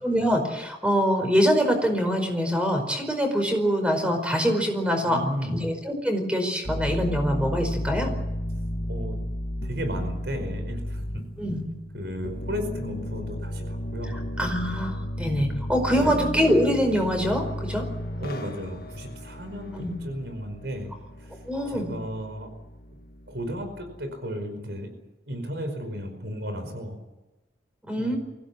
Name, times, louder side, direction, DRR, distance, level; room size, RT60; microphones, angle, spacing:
voice 1, 0.0-5.2 5.5-8.1 11.4-11.6 14.0-17.8 19.7-19.9 21.5-21.9 27.9-28.2, equal, 5° right, 4 dB, 5.0 m, -24 dB
voice 2, 5.1-5.6 8.9-9.2 9.6-11.1 11.9-14.1 15.9-16.2 18.2-21.4 21.7-22.5 23.3-24.9 25.3-27.0 28.0-28.2, equal, 70° right, 7 dB, 5.1 m, -34 dB
sound 1, 6.6-24.0, equal, 55° left, 1.9 m, -34 dB
25.0 x 16.5 x 8.6 m, 1.1 s
head